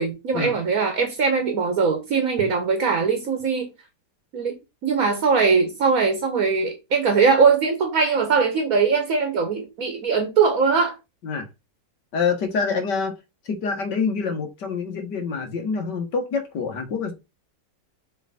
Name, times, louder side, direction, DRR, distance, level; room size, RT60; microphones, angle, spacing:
voice 1, 0.0-3.7 4.3-4.6 4.8-11.0, right 5 dB, 55° right, 1.7 m, -21 dB
voice 2, 12.1-13.2 13.5-17.1, left 5 dB, 75° left, 2.1 m, -26 dB
7.0 x 3.5 x 4.2 m
omnidirectional pair, 1.9 m